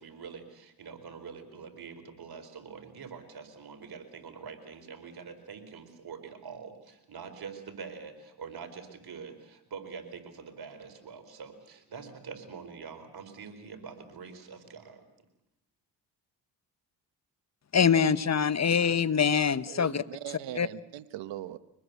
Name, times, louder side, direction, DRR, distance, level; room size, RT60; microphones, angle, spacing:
voice 1, 0.0-15.0, right 5 dB, 60° right, 7 dB, 4.6 m, -45 dB
voice 2, 17.7-20.0 20.6-20.7, left 7 dB, 40° left, 15 dB, 1.2 m, -24 dB
voice 3, 19.7-21.6, right 12 dB, 80° right, 14 dB, 1.2 m, -40 dB
24.5 x 20.0 x 8.3 m, 0.86 s
supercardioid pair, 60°, 43 cm